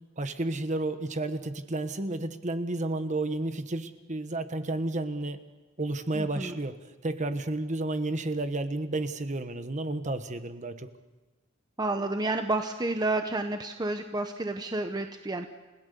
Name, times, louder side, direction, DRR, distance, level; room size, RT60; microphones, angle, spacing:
voice 1, 0.2-5.4 5.8-6.7 7.0-10.9, right 2 dB, 35° right, 9 dB, 1.2 m, -31 dB
voice 2, 6.1-6.6 11.8-15.5, right 2 dB, 20° right, 6 dB, 0.9 m, -30 dB
30.0 x 17.0 x 6.9 m, 1.2 s
head